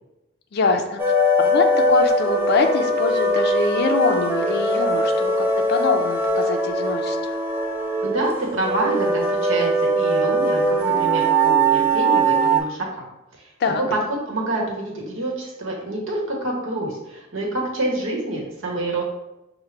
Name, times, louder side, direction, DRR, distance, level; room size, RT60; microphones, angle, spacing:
voice 1, 0.5-1.0 1.4-7.2 13.6-13.8, left 3 dB, 55° left, 4 dB, 0.4 m, -23 dB
sound 1, 1.0-12.6, right 1 dB, 10° right, 0.5 m, -21 dB
voice 2, 8.0-13.1 13.4-13.5 13.8-19.0, right 2 dB, 70° right, -1 dB, 1.0 m, -27 dB
5.8 x 2.1 x 3.2 m, 0.95 s
head